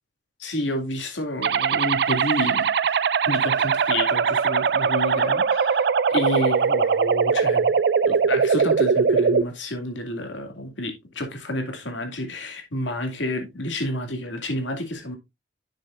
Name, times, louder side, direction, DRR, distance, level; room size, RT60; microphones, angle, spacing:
voice 1, 0.4-2.7 3.3-7.7 8.1-15.2, left 1 dB, 90° left, 2.3 m, -30 dB
sound 1, 1.4-9.4, right 5 dB, 65° right, 0.4 m, -21 dB
10.5 x 6.6 x 2.5 m
head